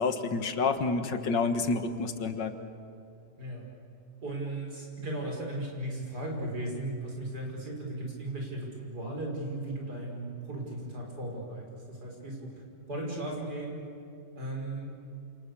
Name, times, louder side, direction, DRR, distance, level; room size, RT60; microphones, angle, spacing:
voice 1, 0.0-2.5, left 4 dB, 90° left, 8 dB, 2.2 m, -29 dB
voice 2, 4.2-12.5 12.9-13.8 14.3-14.9, right 1 dB, 65° right, 0 dB, 6.6 m, -36 dB
28.5 x 28.0 x 7.1 m, 2.5 s
omnidirectional pair, 1.9 m